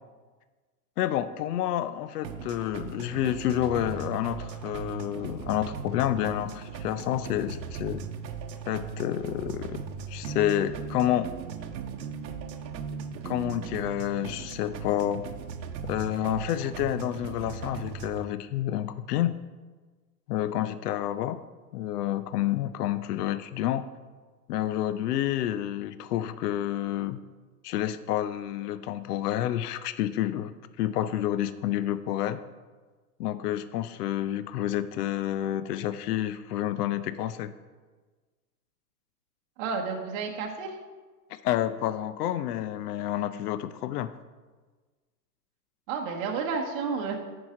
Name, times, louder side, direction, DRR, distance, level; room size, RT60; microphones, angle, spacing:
voice 1, 1.0-8.0 8.7-9.8 10.1-11.3 13.2-15.2 15.8-19.3 20.3-21.4 21.7-23.8 24.5-27.2 27.6-30.5 30.8-32.4 33.2-37.5 41.3-44.1, left 12 dB, 70° left, 13 dB, 0.6 m, -29 dB
sound 1, 2.2-18.2, right 6 dB, 80° right, 0.9 m, -38 dB
voice 2, 39.6-40.8 45.9-47.1, right 5 dB, 30° right, 0 dB, 0.9 m, -31 dB
10.0 x 4.7 x 4.8 m, 1.3 s
hypercardioid pair, 145°, 50 cm